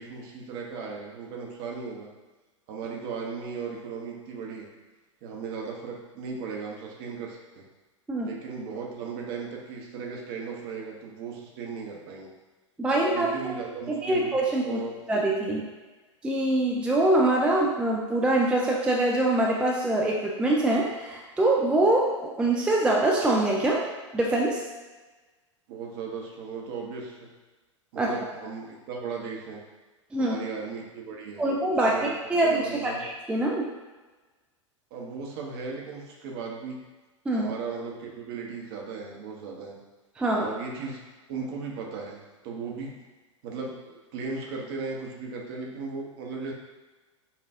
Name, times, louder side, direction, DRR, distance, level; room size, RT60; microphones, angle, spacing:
voice 1, 0.0-2.1 2.7-4.7 5.2-7.7 8.2-12.3 12.9-15.0 25.7-27.3 27.9-29.7 30.2-33.0 34.9-36.8 37.3-39.8 40.3-41.0 41.3-43.0 43.4-46.5, right 5 dB, 50° right, -1 dB, 0.8 m, -37 dB
voice 2, 12.8-13.6 14.0-14.8 15.1-15.6 16.2-23.8 24.1-24.6 28.0-28.1 30.1-30.4 31.4-31.9 32.3-33.7 37.3-37.5 40.2-40.5, right 2 dB, 5° right, -2 dB, 0.4 m, -24 dB
5.5 x 2.4 x 2.5 m, 1.2 s
figure-of-eight pair, 90°, 16 cm